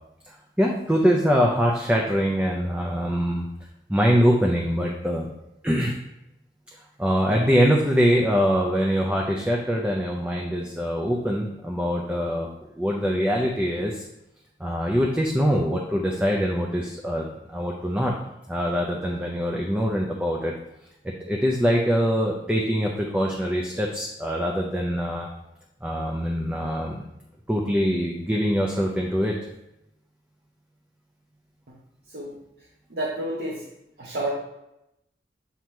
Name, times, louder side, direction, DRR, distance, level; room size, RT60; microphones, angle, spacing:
voice 1, 0.2-3.5 3.9-5.3 5.6-5.9 7.0-12.5 12.7-14.0 14.6-18.1 18.5-20.5 21.0-25.3 25.8-27.0 27.5-29.4, equal, 10° right, -1 dB, 0.5 m, -23 dB
voice 2, 32.9-33.6 34.0-34.4, right 1 dB, 65° right, -3 dB, 0.9 m, -30 dB
7.6 x 2.8 x 4.5 m, 0.86 s
head